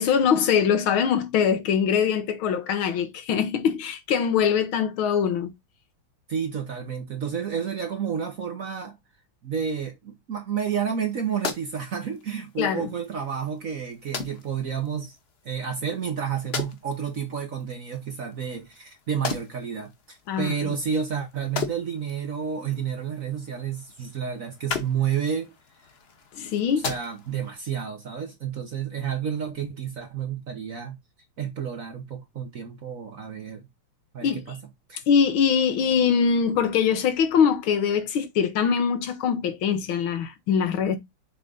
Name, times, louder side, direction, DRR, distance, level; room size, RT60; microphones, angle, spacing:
voice 1, 0.0-5.5 12.6-12.9 20.3-20.7 26.3-26.9 34.2-34.6 35.1-41.0, left 7 dB, 70° left, 1.8 m, -23 dB
voice 2, 6.3-9.0 9.4-15.2 15.4-25.5 26.8-31.0 31.4-33.7 34.1-34.6 34.9-35.0, right 7 dB, 50° right, 1.1 m, -30 dB
sound 1, 10.9-27.6, left 5 dB, 40° left, 0.9 m, -39 dB
6.9 x 4.0 x 3.8 m
omnidirectional pair, 2.4 m